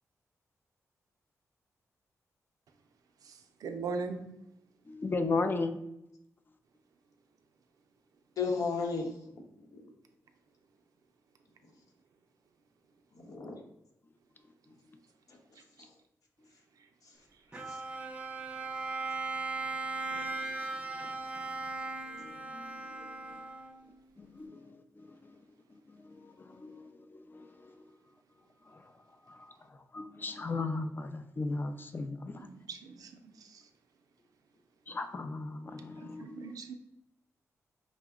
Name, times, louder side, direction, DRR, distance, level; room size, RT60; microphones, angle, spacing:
voice 1, 3.2-4.2 32.4-33.1 33.4-33.6 36.0-36.7, right 4 dB, 80° right, 0.4 m, -40 dB
voice 2, 4.9-5.8 17.6-17.7 22.1-23.4 24.2-28.0 28.7-28.9 29.3-32.5 34.9-36.5, left 3 dB, 35° left, 0.4 m, -37 dB
voice 3, 8.4-9.9 11.7-11.8 13.1-13.6 15.3-16.0 17.0-17.3 17.5-17.8 21.0-21.2, left 4 dB, 75° left, 0.9 m, -37 dB
Bowed string instrument, 17.5-23.9, right 3 dB, 20° right, 0.5 m, -38 dB
4.8 x 2.1 x 3.5 m
cardioid pair, 90°, 6 cm